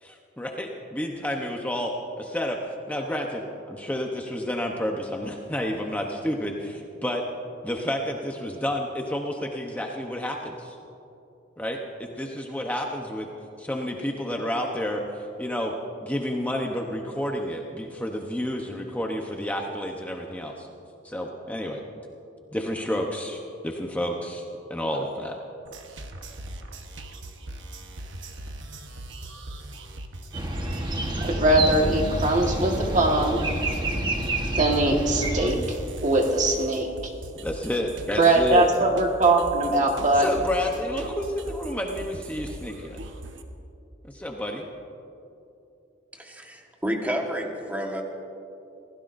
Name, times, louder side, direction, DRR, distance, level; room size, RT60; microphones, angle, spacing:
voice 1, 0.0-1.9 2.2-2.6 2.9-7.2 7.6-10.8 11.6-13.3 13.6-15.7 16.0-20.7 21.0-21.8 22.5-23.4 23.6-24.4 24.7-25.4 37.4-38.7 40.1-43.0 44.1-44.7, equal, 10° left, 1 dB, 0.9 m, -30 dB
sound 1, 25.6-43.4, right 1 dB, 70° right, 1.1 m, -40 dB
sound 2, 30.3-35.5, right 1 dB, 25° right, 1.2 m, -28 dB
voice 2, 31.2-33.4 34.5-36.9 38.2-40.3, right 2 dB, 40° right, 1 dB, 1.6 m, -21 dB
voice 3, 46.1-48.0, equal, 10° right, 1 dB, 1.4 m, -30 dB
25.5 x 16.5 x 2.6 m, 2.8 s
head